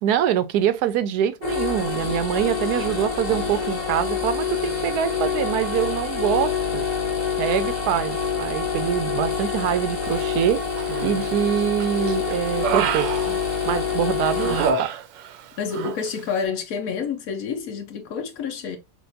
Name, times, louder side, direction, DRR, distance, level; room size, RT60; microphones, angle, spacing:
voice 1, 0.0-6.9 7.4-10.6 11.0-13.1 13.6-14.9, right 10 dB, 70° right, 1.0 m, -24 dB
sound 1, 1.4-14.7, left 6 dB, 30° left, 1.0 m, -26 dB
Human voice, 10.8-11.4 11.8-13.9 14.4-15.4 15.7-16.0, right 6 dB, 90° right, 1.3 m, -27 dB
voice 2, 15.6-18.8, left 6 dB, 65° left, 1.0 m, -28 dB
6.3 x 2.5 x 2.5 m
omnidirectional pair, 1.9 m